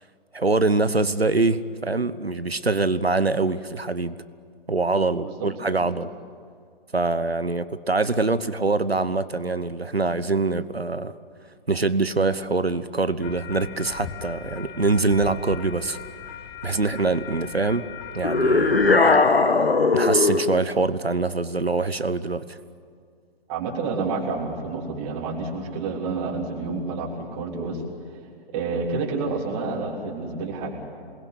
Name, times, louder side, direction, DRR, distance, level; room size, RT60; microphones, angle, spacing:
voice 1, 0.3-4.1 4.7-6.1 6.9-11.1 11.7-16.0 16.6-17.9 18.1-18.8 19.9-22.6, right 3 dB, 85° right, 14 dB, 1.2 m, -24 dB
sound 1, 13.2-19.0, left 8 dB, 25° left, 1.4 m, -39 dB
sound 2, 18.2-20.5, left 3 dB, 75° left, 1.8 m, -18 dB
voice 2, 23.5-27.8 28.5-30.8, right 4 dB, 25° right, -1 dB, 3.6 m, -29 dB
27.5 x 21.0 x 9.6 m, 2.2 s
figure-of-eight pair, 130°, 30 cm